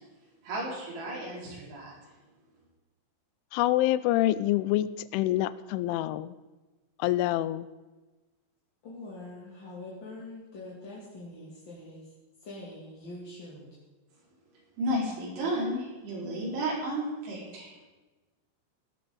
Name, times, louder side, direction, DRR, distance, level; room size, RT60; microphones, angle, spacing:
voice 1, 0.4-2.0 14.8-17.7, right 1 dB, 75° right, -5 dB, 6.6 m, -33 dB
voice 2, 3.5-6.3 7.0-7.7, left 15 dB, 85° left, 16 dB, 3.0 m, -26 dB
voice 3, 8.8-12.1 12.4-13.8, left 2 dB, 35° left, -6 dB, 2.2 m, -44 dB
18.0 x 12.5 x 3.9 m, 1.2 s
omnidirectional pair, 5.4 m